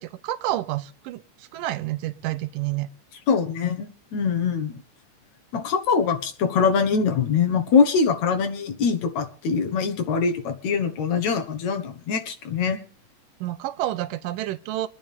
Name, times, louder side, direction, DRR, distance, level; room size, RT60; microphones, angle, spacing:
voice 1, 0.0-2.9 13.4-14.9, right 14 dB, 90° right, 15 dB, 2.4 m, -29 dB
voice 2, 3.3-4.8 5.5-12.8, left 5 dB, 65° left, 5 dB, 2.5 m, -23 dB
24.5 x 10.0 x 3.6 m, 0.42 s
omnidirectional pair, 3.8 m